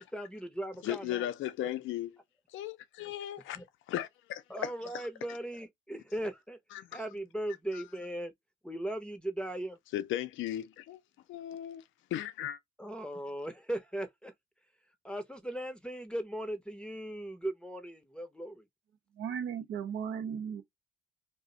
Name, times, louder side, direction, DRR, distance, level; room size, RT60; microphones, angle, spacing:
voice 1, 0.0-1.3 3.5-3.6 4.5-6.6 6.9-8.3 8.6-9.8 12.8-14.3 15.0-18.6, right 1 dB, 5° left, 0.6 m, -38 dB
voice 2, 0.8-2.2 2.5-3.6 3.9-5.0 6.7-7.0 7.7-7.8 9.9-11.0 11.3-11.8 12.1-12.6, left 12 dB, 75° left, 0.4 m, -36 dB
voice 3, 19.2-20.6, right 7 dB, 80° right, 0.7 m, -36 dB
2.4 x 2.0 x 3.7 m
cardioid pair, 90°, 20 cm